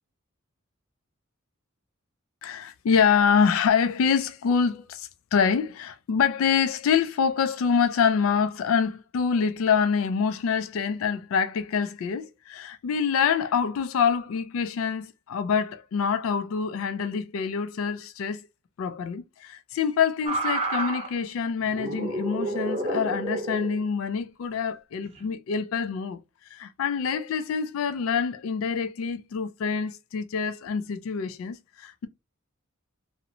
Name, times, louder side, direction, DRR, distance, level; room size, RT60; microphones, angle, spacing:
voice 1, 2.4-18.5 18.8-26.2 26.5-32.1, left 6 dB, 75° left, 0.3 m, -26 dB
sound 1, 20.3-21.1 21.7-23.8 25.0-25.3, right 2 dB, 30° right, 0.7 m, -29 dB
2.5 x 2.0 x 2.8 m
head